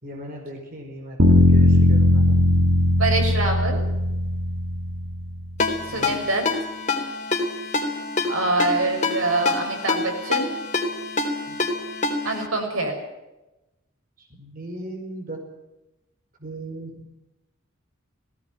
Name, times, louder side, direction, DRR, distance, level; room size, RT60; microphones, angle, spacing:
voice 1, 0.0-2.4 5.9-6.2 11.5-11.6 14.2-15.4 16.4-16.9, right 1 dB, 45° right, 1 dB, 4.8 m, -37 dB
sound 1, 1.2-5.3, left 1 dB, 65° right, 2.0 m, -18 dB
voice 2, 3.0-3.8 5.9-6.4 8.3-10.5 12.2-12.9, right 2 dB, 80° right, 3 dB, 6.3 m, -25 dB
Ringtone, 5.6-12.5, left 3 dB, 35° left, 3.7 m, -26 dB
19.0 x 17.5 x 9.3 m, 0.96 s
head